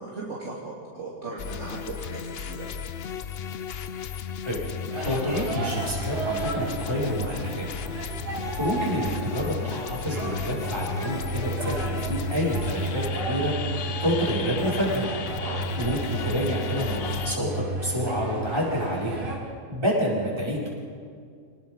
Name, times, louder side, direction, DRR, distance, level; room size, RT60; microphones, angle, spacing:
voice 1, 0.0-2.7 15.4-15.6, right 3 dB, 50° right, -6 dB, 3.2 m, -37 dB
sound 1, 1.4-17.4, left 7 dB, 55° left, 0.8 m, -35 dB
sound 2, 4.9-19.4, right 2 dB, 90° right, 4.7 m, -32 dB
voice 2, 5.0-7.7 8.5-15.0 15.8-19.3 19.7-20.7, equal, 15° right, -6 dB, 6.2 m, -28 dB
27.5 x 19.5 x 5.6 m, 2.2 s
omnidirectional pair, 1.6 m